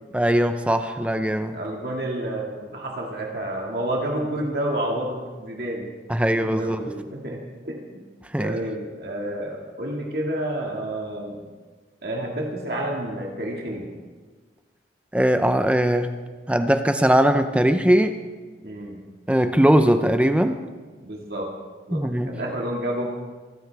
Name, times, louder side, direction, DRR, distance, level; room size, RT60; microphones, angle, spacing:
voice 1, 0.1-1.6 6.1-6.8 8.3-8.6 15.1-16.1 16.5-18.2 19.3-20.6 21.9-22.3, equal, 5° right, 8 dB, 0.5 m, -20 dB
voice 2, 1.3-5.9 6.3-8.0 8.4-11.4 12.0-13.9 18.6-19.0 21.0-21.5 21.9-23.1, right 1 dB, 55° right, -1 dB, 1.9 m, -30 dB
25.0 x 13.0 x 3.4 m, 1.4 s
head